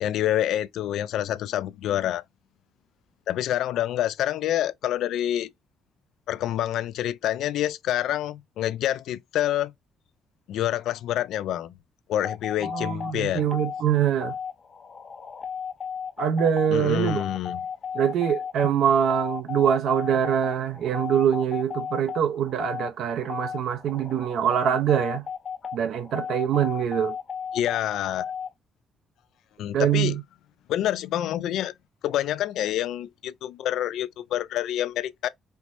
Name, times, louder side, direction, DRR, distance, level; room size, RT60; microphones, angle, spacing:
voice 1, 0.0-2.2 3.3-5.5 6.3-9.7 10.5-11.7 12.1-13.5 16.7-17.6 27.5-28.3 29.6-30.2 30.7-31.7 32.0-35.3, left 12 dB, 80° left, 0.3 m, -27 dB
sound 1, 12.2-28.5, left 7 dB, 45° left, 1.0 m, -35 dB
voice 2, 12.6-14.3 16.2-17.2 17.9-25.2 25.7-27.2 29.7-30.2, right 9 dB, 75° right, 0.5 m, -24 dB
4.5 x 2.1 x 2.5 m
cardioid pair, 90°, 0 cm